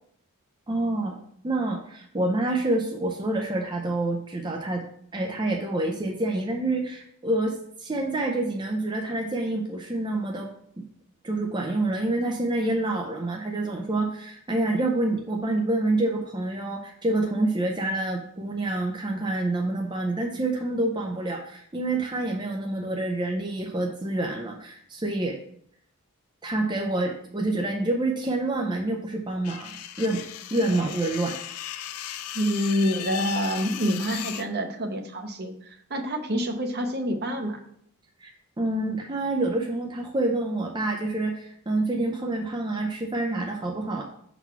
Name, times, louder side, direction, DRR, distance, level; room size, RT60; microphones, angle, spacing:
voice 1, 0.7-1.2 1.4-4.8 5.1-10.5 10.8-10.9 11.2-25.4 26.4-29.7 30.0-30.2 30.5-31.4 38.2-38.3 38.6-44.0, right 2 dB, 20° right, 1 dB, 0.6 m, -27 dB
sound 1, 29.4-34.5, left 11 dB, 85° left, 0.4 m, -36 dB
voice 2, 32.3-37.6, equal, 45° right, 5 dB, 0.9 m, -27 dB
6.0 x 4.0 x 5.6 m, 0.69 s
head